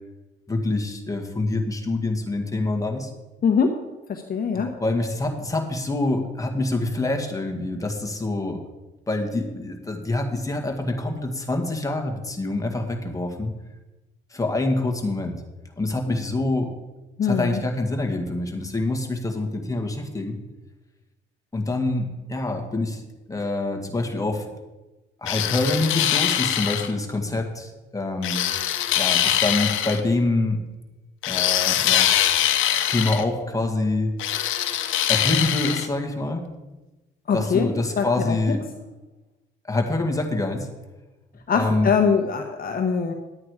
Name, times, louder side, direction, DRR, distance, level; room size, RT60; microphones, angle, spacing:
voice 1, 0.5-3.1 4.5-8.6 9.1-13.5 14.3-15.4 15.8-16.7 17.2-20.4 21.5-23.0 23.3-24.5 25.2-28.5 29.0-30.6 31.3-32.1 32.9-34.1 35.1-36.4 37.3-38.6 39.7-40.7 41.5-41.9, left 2 dB, 15° left, 3 dB, 1.9 m, -26 dB
voice 2, 3.4-3.8 4.1-4.7 17.2-17.6 37.3-37.7 38.0-38.5 41.5-43.1, left 6 dB, 50° left, 4 dB, 1.1 m, -22 dB
sound 1, 25.3-26.9 28.2-30.0 31.2-33.2 34.2-35.9, left 11 dB, 80° left, 0.9 m, -23 dB
11.0 x 8.7 x 4.8 m, 1.1 s
cardioid pair, 90°, 20 cm